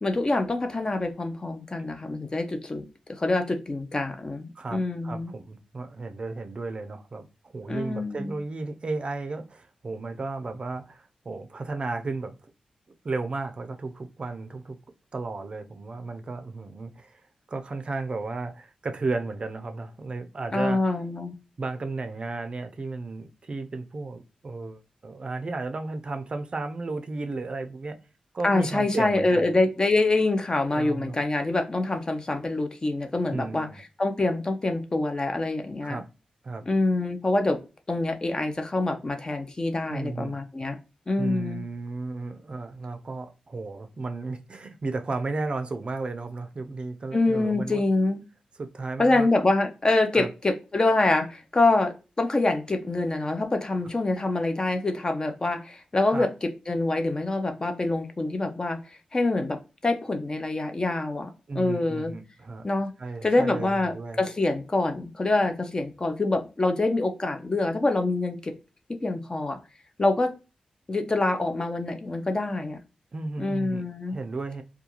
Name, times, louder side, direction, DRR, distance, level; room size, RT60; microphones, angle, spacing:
voice 1, 0.0-2.8 3.2-5.3 7.7-8.4 20.5-21.3 28.4-33.7 34.0-36.0 36.7-37.6 37.9-40.8 41.1-41.6 47.1-48.2 49.0-58.8 59.1-62.2 62.6-62.9 63.2-68.5 68.9-69.6 70.0-70.3 70.9-72.8 73.4-74.2, left 2 dB, 30° left, 0.5 m, -25 dB
voice 2, 4.6-12.4 13.0-14.8 15.1-17.2 17.5-21.0 21.6-28.0 28.3-29.5 30.7-31.2 33.3-33.8 35.8-36.1 36.4-36.7 39.8-40.4 41.2-47.8 48.6-49.3 50.1-50.3 56.1-56.3 61.5-62.7 63.0-64.2 73.1-74.6, right 3 dB, 45° right, 0.4 m, -34 dB
2.3 x 2.3 x 2.8 m
cardioid pair, 65°, 2 cm